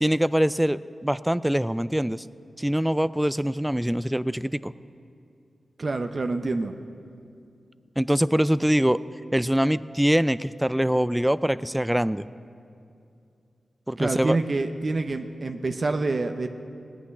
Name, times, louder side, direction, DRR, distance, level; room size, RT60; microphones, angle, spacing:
voice 1, 0.0-2.2 2.6-4.7 8.0-9.0 9.3-12.3 13.9-14.4, equal, 5° right, 16 dB, 0.3 m, -23 dB
voice 2, 5.8-6.7 14.0-16.5, right 3 dB, 50° right, 7 dB, 0.6 m, -27 dB
17.0 x 6.1 x 9.7 m, 2.5 s
wide cardioid pair, 75°, 0 cm